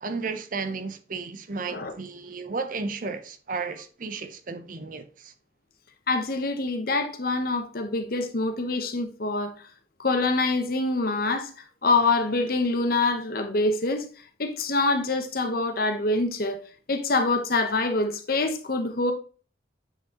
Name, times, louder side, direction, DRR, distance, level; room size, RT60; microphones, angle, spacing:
voice 1, 0.0-5.3, right 4 dB, 45° right, 0.6 m, -33 dB
voice 2, 6.1-9.5 10.0-11.5 11.8-14.1 14.4-16.6 16.9-19.1, left 3 dB, 50° left, 0.9 m, -25 dB
7.9 x 4.6 x 2.9 m
head